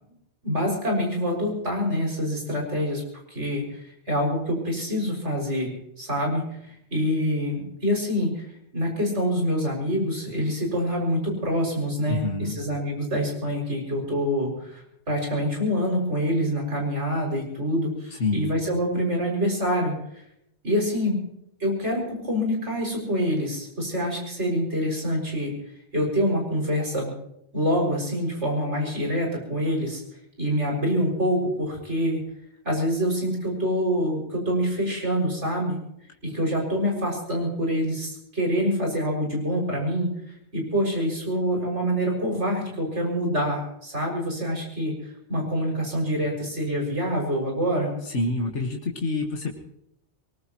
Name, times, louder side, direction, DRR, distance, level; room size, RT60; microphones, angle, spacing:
voice 1, 0.4-3.0 3.3-6.4 6.7-19.9 20.6-21.2 21.6-25.5 25.9-27.1 27.5-30.0 30.4-32.2 32.7-35.8 36.2-44.9 45.3-47.9, equal, 85° right, 0 dB, 6.8 m, -26 dB
voice 2, 12.1-12.6 18.2-18.5 48.1-49.5, left 2 dB, 85° left, 1 dB, 2.2 m, -27 dB
23.0 x 20.0 x 3.1 m, 0.75 s
omnidirectional pair, 1.2 m